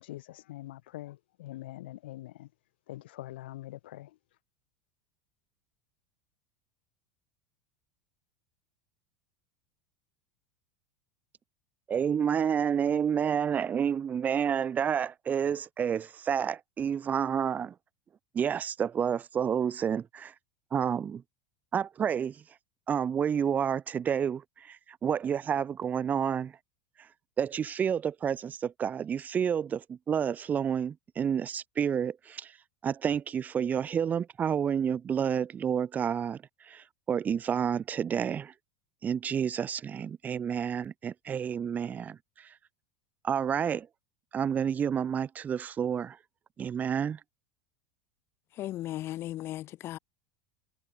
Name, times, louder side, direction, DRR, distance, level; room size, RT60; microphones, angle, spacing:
voice 1, 0.0-2.5 2.9-4.2, left 16 dB, 70° left, 4.1 m, -44 dB
voice 2, 11.9-17.7 18.3-20.3 20.7-21.2 21.7-22.4 22.9-26.5 27.4-32.5 32.8-36.4 36.6-38.5 39.0-42.5 43.2-43.9 44.3-46.2 46.6-47.2, right 8 dB, 30° right, 0.8 m, -29 dB
voice 3, 48.5-50.0, left 14 dB, 45° left, 2.3 m, -36 dB
hypercardioid pair, 85°, 6 cm